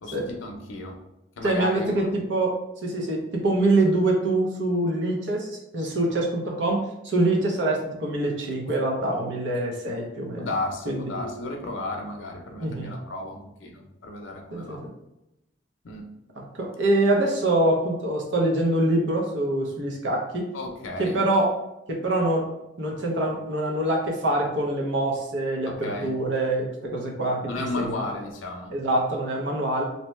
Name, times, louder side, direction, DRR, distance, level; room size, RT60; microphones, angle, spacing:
voice 1, 0.0-1.0 1.4-2.1 10.4-14.8 15.8-16.1 20.5-21.2 25.6-26.1 27.5-28.7, left 2 dB, 85° left, 2 dB, 0.6 m, -33 dB
voice 2, 1.4-2.6 2.8-10.5 10.9-11.2 12.6-13.0 14.5-14.9 16.5-20.5 21.0-21.5 21.9-22.4 22.8-27.9 28.7-29.8, right 1 dB, 70° right, 0 dB, 0.6 m, -25 dB
2.6 x 2.1 x 3.1 m, 0.91 s
head